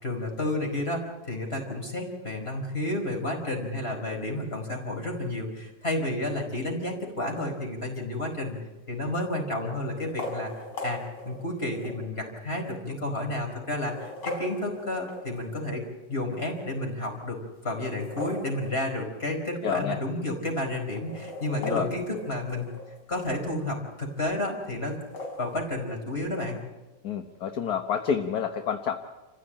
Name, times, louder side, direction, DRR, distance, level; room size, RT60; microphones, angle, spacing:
voice 1, 0.0-8.6 8.9-10.5 10.8-15.8 16.1-22.7 23.1-25.0 25.4-26.6, left 1 dB, 35° left, 2 dB, 5.2 m, -31 dB
sound 1, 8.3-8.8 10.0-12.0 12.7-12.8 13.7-15.7 17.8-19.2 19.5-19.6 19.9-20.0 20.8-23.1 24.9-25.6, left 2 dB, 75° left, 6.1 m, -39 dB
voice 2, 19.6-20.0 21.6-21.9 27.0-29.0, left 7 dB, 60° left, 6 dB, 1.7 m, -28 dB
29.0 x 15.5 x 8.9 m, 1.1 s
omnidirectional pair, 1.9 m